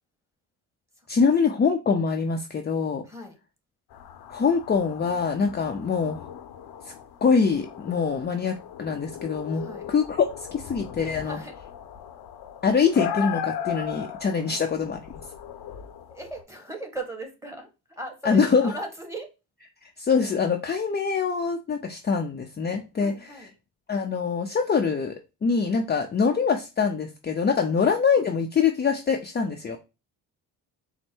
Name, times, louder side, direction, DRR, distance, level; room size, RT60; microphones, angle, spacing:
voice 1, 1.1-3.0 4.3-6.2 7.2-11.4 12.6-15.0 18.2-18.7 20.0-23.5 23.9-25.1 25.4-29.8, left 5 dB, 25° left, 3 dB, 0.6 m, -24 dB
voice 2, 3.0-3.4 9.5-9.9 11.2-11.5 14.4-14.6 16.1-17.7 18.0-19.3 23.0-23.5, right 1 dB, 5° right, 3 dB, 1.3 m, -38 dB
sound 1, 3.9-16.4, left 9 dB, 70° left, 0.8 m, -37 dB
4.4 x 2.1 x 4.3 m, 0.28 s
cardioid pair, 80°, 39 cm